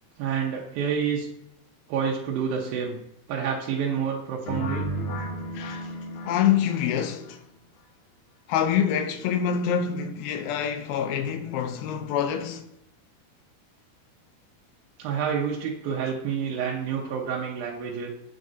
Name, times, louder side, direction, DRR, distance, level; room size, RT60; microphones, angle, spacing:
voice 1, 0.2-1.3 1.9-3.0 3.3-4.9 15.0-18.1, right 7 dB, 75° right, 2.4 m, -28 dB
sound 1, 4.5-7.3, right 1 dB, 65° left, 1.4 m, -33 dB
voice 2, 5.5-5.9 6.2-7.4 8.5-12.6, left 8 dB, 80° left, 2.4 m, -26 dB
8.2 x 4.7 x 2.6 m
omnidirectional pair, 4.6 m